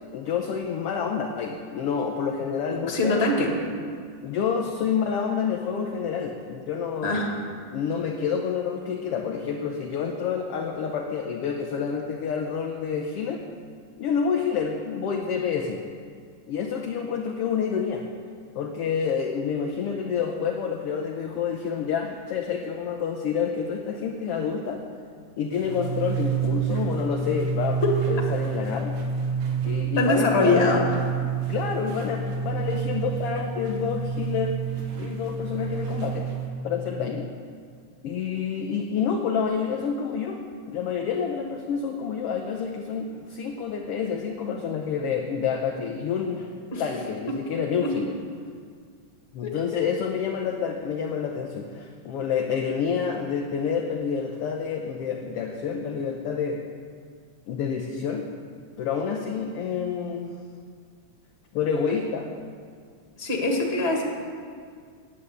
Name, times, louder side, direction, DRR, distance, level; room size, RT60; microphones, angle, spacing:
voice 1, 0.1-3.3 4.2-7.1 7.7-13.4 14.0-15.8 16.5-18.1 18.5-24.8 25.4-27.8 28.1-28.9 29.6-30.7 31.5-34.6 35.0-36.3 36.6-37.3 38.0-40.4 40.7-46.5 46.8-48.1 49.3-56.6 57.5-58.3 58.8-60.4 61.5-62.3, left 6 dB, 70° left, 2 dB, 1.5 m, -28 dB
voice 2, 2.8-3.5 7.0-7.3 27.8-27.9 30.0-30.8 46.7-46.8 49.4-49.5 63.2-64.0, left 2 dB, 25° left, -1 dB, 2.0 m, -22 dB
sound 1, 25.5-36.5, right 6 dB, 85° right, 2.9 m, -29 dB
10.0 x 9.8 x 8.3 m, 2.1 s
omnidirectional pair, 3.4 m